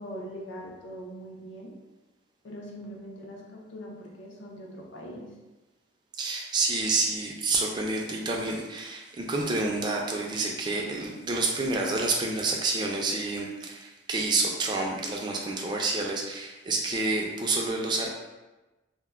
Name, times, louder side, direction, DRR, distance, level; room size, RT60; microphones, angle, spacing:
voice 1, 0.0-1.7 2.4-5.3, equal, 65° left, -1 dB, 0.5 m, -41 dB
voice 2, 6.1-18.1, right 3 dB, 20° right, -1 dB, 0.3 m, -28 dB
2.1 x 2.1 x 3.4 m, 1.1 s
head